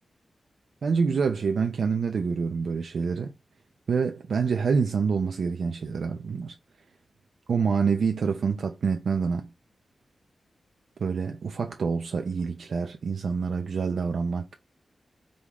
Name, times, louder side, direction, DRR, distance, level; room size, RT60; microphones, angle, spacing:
voice 1, 0.8-3.3 3.9-6.6 7.5-9.5 11.0-14.5, right 5 dB, 80° right, 0.5 m, -27 dB
3.9 x 3.4 x 3.0 m
wide cardioid pair, 95°, 0 cm